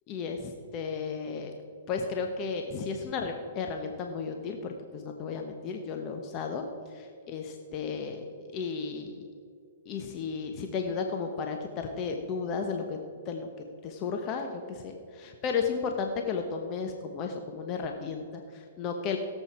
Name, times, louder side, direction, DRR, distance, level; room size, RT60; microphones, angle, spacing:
voice 1, 0.1-1.5 1.9-6.6 6.9-7.4 7.7-8.2 8.5-9.2 9.9-13.0 13.3-13.5 13.8-19.2, left 5 dB, 35° left, 4 dB, 1.1 m, -33 dB
17.0 x 7.9 x 4.4 m, 2.4 s
hypercardioid pair, 130°, 0 cm